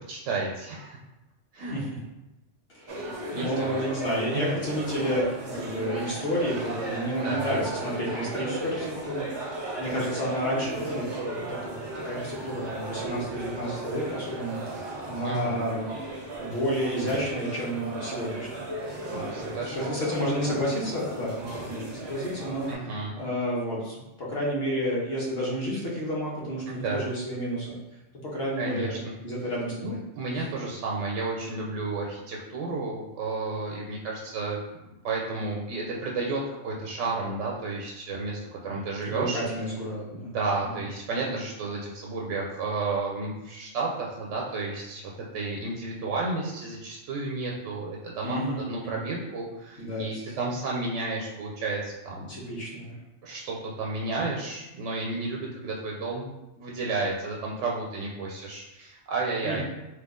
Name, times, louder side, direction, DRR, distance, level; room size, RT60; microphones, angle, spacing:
voice 1, 0.1-1.0 1.5-1.8 3.3-3.8 4.3-4.6 7.2-7.6 15.2-15.6 19.1-19.9 22.7-23.2 26.7-27.0 28.6-29.1 29.8-34.6 35.0-39.4 40.2-52.4 53.2-56.3 56.6-59.6, right 3 dB, 85° right, -3 dB, 0.9 m, -32 dB
voice 2, 2.7-15.9 16.4-18.6 19.4-22.7 23.2-27.8 28.2-29.0 29.2-30.0 30.4-30.5 39.0-40.3 48.2-49.0 49.8-50.2 52.3-52.9 59.4-59.6, equal, 60° left, -5 dB, 1.2 m, -31 dB
sound 1, 2.9-22.7, right 2 dB, 45° right, 0.3 m, -36 dB
3.1 x 2.3 x 3.6 m, 0.99 s
omnidirectional pair, 1.2 m